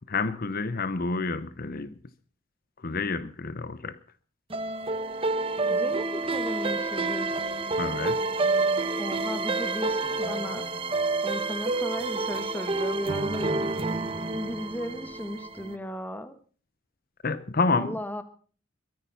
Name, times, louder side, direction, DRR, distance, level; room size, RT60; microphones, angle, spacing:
voice 1, 0.1-1.9 2.8-4.0 7.8-8.2 17.2-17.9, left 3 dB, 45° left, 15 dB, 0.8 m, -28 dB
sound 1, 4.5-15.8, right 3 dB, 25° right, 1.1 m, -28 dB
voice 2, 5.6-7.3 9.0-10.7 11.2-13.6 14.3-16.4 17.7-18.2, equal, 10° left, 11 dB, 1.5 m, -35 dB
22.5 x 10.5 x 5.7 m, 0.41 s
head